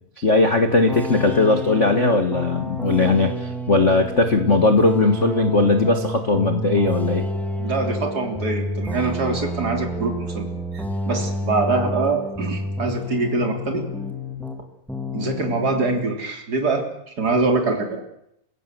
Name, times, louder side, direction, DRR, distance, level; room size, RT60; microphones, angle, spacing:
voice 1, 0.2-7.2, left 3 dB, 60° left, 5 dB, 0.7 m, -19 dB
sound 1, 0.9-14.6 14.9-16.1, equal, ahead, 1.0 m, -29 dB
voice 2, 7.6-10.5 10.7-13.9 15.1-18.0, right 3 dB, 25° right, 4 dB, 3.6 m, -24 dB
29.5 x 16.5 x 7.6 m, 0.79 s
omnidirectional pair, 4.0 m